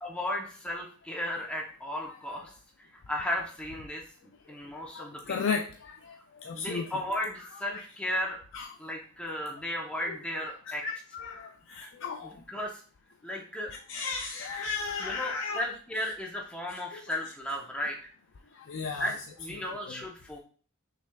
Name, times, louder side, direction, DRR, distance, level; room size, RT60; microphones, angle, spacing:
voice 1, 0.0-2.5 2.8-4.0 4.5-5.6 6.5-8.4 8.8-10.8 12.2-12.8 13.2-13.7 15.0-18.0 19.0-20.4, left 1 dB, 5° left, -1 dB, 0.7 m, -35 dB
voice 2, 4.9-5.6 6.5-6.8 7.4-7.8 8.5-8.7 10.1-10.2 10.8-12.3 13.9-15.6 16.9-17.0 18.7-19.1 19.5-19.6, left 5 dB, 55° left, 3 dB, 0.4 m, -34 dB
5.9 x 3.3 x 2.3 m, 0.42 s
head